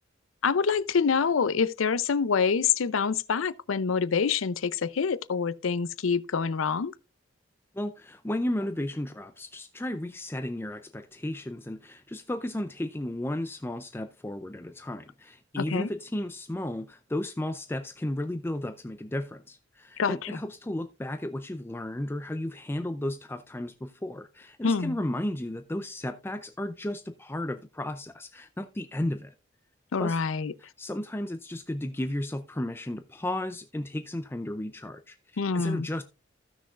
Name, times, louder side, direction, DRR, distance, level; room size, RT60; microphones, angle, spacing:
voice 1, 0.4-6.9 15.6-15.9 20.0-20.4 24.6-24.9 29.9-30.5 35.4-35.9, left 5 dB, 90° left, 0.5 m, -26 dB
voice 2, 7.7-29.3 30.0-30.2 30.6-36.0, left 1 dB, 10° left, 0.4 m, -34 dB
15.5 x 6.2 x 2.4 m
head